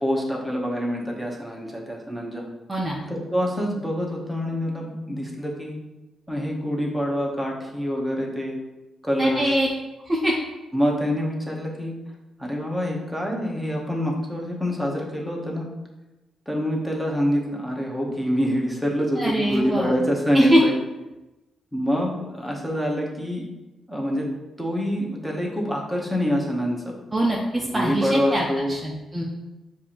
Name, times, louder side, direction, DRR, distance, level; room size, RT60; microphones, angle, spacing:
voice 1, 0.0-2.5 3.1-5.8 6.3-8.6 9.0-9.6 10.7-12.0 12.4-15.7 16.5-20.7 21.7-23.4 23.9-24.3 24.6-26.9 27.6-28.8, equal, ahead, -2 dB, 0.8 m, -26 dB
voice 2, 2.7-3.0 9.2-9.7 10.1-10.3 19.2-20.0 20.3-20.6 27.1-29.2, right 1 dB, 15° right, -3 dB, 0.5 m, -23 dB
6.6 x 2.5 x 2.9 m, 1.0 s
cardioid pair, 130°, 0 cm